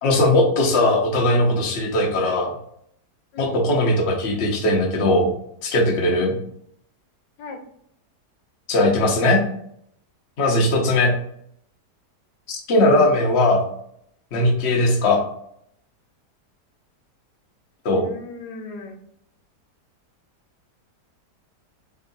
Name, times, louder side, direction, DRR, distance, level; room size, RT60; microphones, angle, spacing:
voice 1, 0.0-2.5 3.4-5.3 5.6-6.3 8.7-9.4 10.4-11.1 12.5-13.6 14.3-15.2 17.8-18.0, left 1 dB, 45° left, 0 dB, 1.0 m, -19 dB
voice 2, 3.3-3.7 6.0-6.3 7.4-7.6 10.5-10.8 18.0-19.0, left 3 dB, 75° left, 2 dB, 1.3 m, -38 dB
3.6 x 3.3 x 4.0 m, 0.70 s
omnidirectional pair, 1.8 m